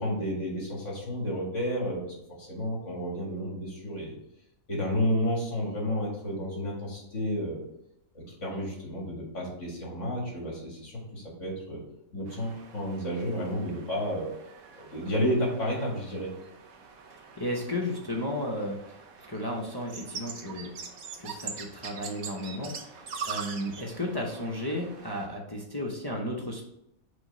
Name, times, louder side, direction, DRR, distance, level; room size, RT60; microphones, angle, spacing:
voice 1, 0.0-4.2 4.7-7.6 8.1-11.8 12.1-14.3 14.8-16.3, equal, 60° left, -3 dB, 2.5 m, -31 dB
sound 1, 12.3-25.3, right 6 dB, 90° right, 1.3 m, -43 dB
voice 2, 17.4-19.0 19.3-20.7 21.2-26.6, left 1 dB, 20° left, -2 dB, 0.7 m, -34 dB
6.4 x 3.1 x 5.5 m, 0.80 s
omnidirectional pair, 1.4 m